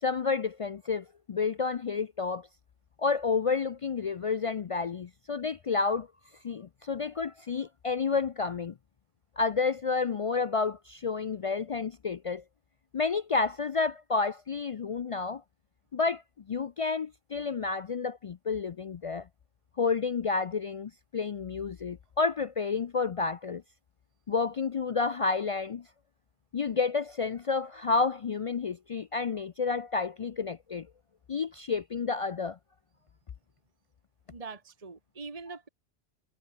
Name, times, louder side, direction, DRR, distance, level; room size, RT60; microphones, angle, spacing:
voice 1, 0.0-2.5 3.0-6.1 6.4-8.7 9.4-12.4 12.9-15.4 15.9-16.2 16.5-19.3 19.8-23.6 24.3-25.9 26.5-30.9 31.3-32.6, left 4 dB, 55° left, 0.4 m, -30 dB
voice 2, 34.3-35.7, right 4 dB, 35° right, 1.6 m, -43 dB
omnidirectional pair, 1.1 m